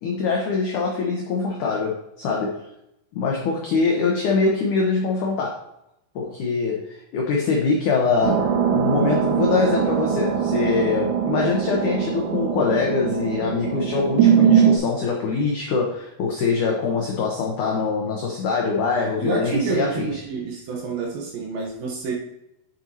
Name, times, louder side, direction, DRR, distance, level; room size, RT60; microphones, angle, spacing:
voice 1, 0.0-2.6 3.1-5.6 6.2-20.2, left 4 dB, 75° left, -1 dB, 1.9 m, -23 dB
sound 1, 8.2-14.8, right 8 dB, 90° right, 3.1 m, -21 dB
voice 2, 19.2-22.1, right 4 dB, 70° right, 0 dB, 2.7 m, -28 dB
8.7 x 6.6 x 2.8 m, 0.82 s
omnidirectional pair, 4.8 m